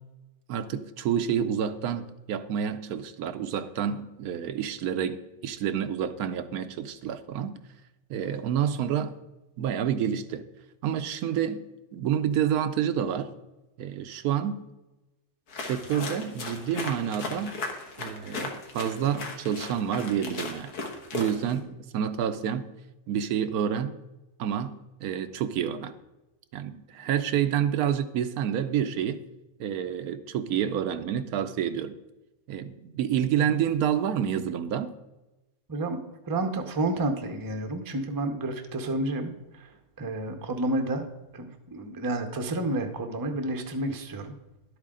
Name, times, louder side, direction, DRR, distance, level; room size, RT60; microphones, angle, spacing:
voice 1, 0.5-7.6 8.1-9.2 9.6-10.4 10.8-11.6 11.9-13.3 13.8-14.6 15.6-17.5 18.0-20.7 21.1-22.7 23.1-23.9 24.4-25.9 26.5-29.2 29.6-31.9 32.5-34.9, right 9 dB, 80° right, 10 dB, 1.1 m, -28 dB
sound 1, 15.5-21.6, left 3 dB, 75° left, 1.9 m, -37 dB
voice 2, 35.7-39.7 40.0-41.1 41.3-44.3, right 2 dB, 20° right, 6 dB, 0.6 m, -30 dB
11.0 x 8.3 x 3.7 m, 1.0 s
omnidirectional pair, 1.6 m